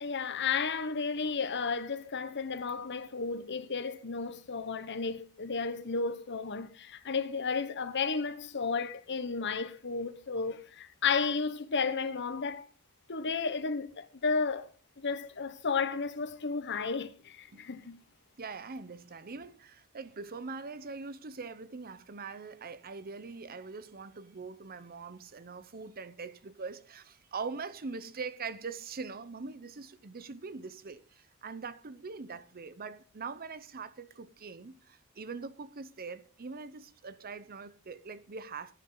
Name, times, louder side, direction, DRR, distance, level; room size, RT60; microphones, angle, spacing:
voice 1, 0.0-12.7 13.1-14.7 15.0-18.0, left 5 dB, 55° left, 1.1 m, -33 dB
voice 2, 18.4-38.7, right 4 dB, 45° right, 0.8 m, -42 dB
16.0 x 10.0 x 3.9 m
head